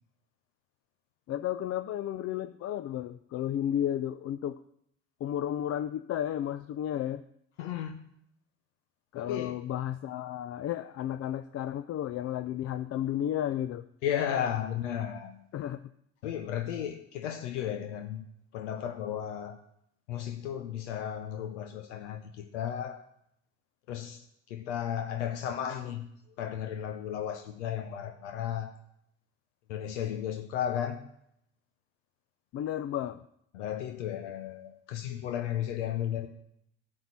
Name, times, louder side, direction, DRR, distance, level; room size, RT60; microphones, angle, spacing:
voice 1, 1.3-4.6 5.2-7.2 9.1-13.9 15.5-15.8 32.5-33.2, left 11 dB, 45° left, 11 dB, 0.5 m, -33 dB
voice 2, 7.6-8.0 9.2-9.5 14.0-15.4 16.2-18.3 18.5-19.6 20.1-23.0 23.9-26.1 26.4-28.8 29.7-31.0 33.5-36.3, left 10 dB, 80° left, 7 dB, 0.9 m, -34 dB
11.5 x 4.5 x 8.3 m, 0.73 s
hypercardioid pair, 70°, 35 cm